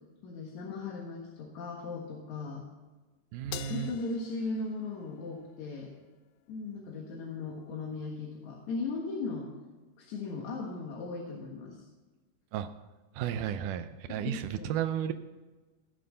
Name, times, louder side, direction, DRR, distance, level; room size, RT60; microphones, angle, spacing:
voice 1, 0.2-2.6 3.7-5.9 6.5-9.5 10.0-11.9 13.3-13.5 14.1-14.8, left 3 dB, 60° left, -1 dB, 2.5 m, -37 dB
voice 2, 3.3-3.9 12.5-12.7 13.2-15.1, right 10 dB, 85° right, 9 dB, 1.8 m, -33 dB
Crash cymbal, 3.5-6.1, left 15 dB, 85° left, 2.4 m, -46 dB
17.0 x 7.5 x 6.8 m, 1.2 s
omnidirectional pair, 4.3 m